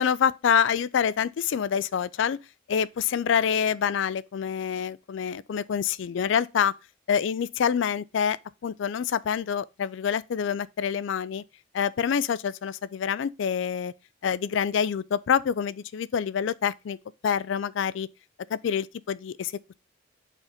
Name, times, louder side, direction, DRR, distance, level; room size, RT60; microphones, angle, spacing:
voice 1, 0.0-2.4 2.7-6.7 7.1-8.4 8.6-11.4 11.7-13.9 14.2-17.0 17.2-18.1 18.5-19.5, left 7 dB, 70° left, 0.3 m, -26 dB
5.0 x 4.0 x 4.9 m
head